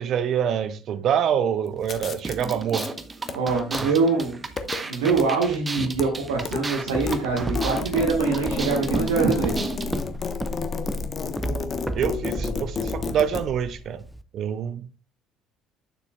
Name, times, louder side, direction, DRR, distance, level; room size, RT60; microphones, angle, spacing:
voice 1, 0.0-2.9 3.8-3.9 12.0-14.0 14.3-14.9, right 8 dB, 50° right, 0.7 m, -26 dB
sound 1, 1.8-2.9 3.2-3.8 4.4-4.8 5.1-5.3 5.6-6.1 6.3-6.6 6.9-13.4, left 5 dB, 35° left, 1.1 m, -31 dB
sound 2, 2.2-10.0, right 3 dB, 20° right, 1.0 m, -34 dB
voice 2, 3.3-4.5 4.8-9.6, right 4 dB, 70° right, 1.5 m, -24 dB
Walk footsteps, 6.3-14.2, equal, 5° right, 0.7 m, -33 dB
9.3 x 7.0 x 2.3 m
figure-of-eight pair, 55°, 0 cm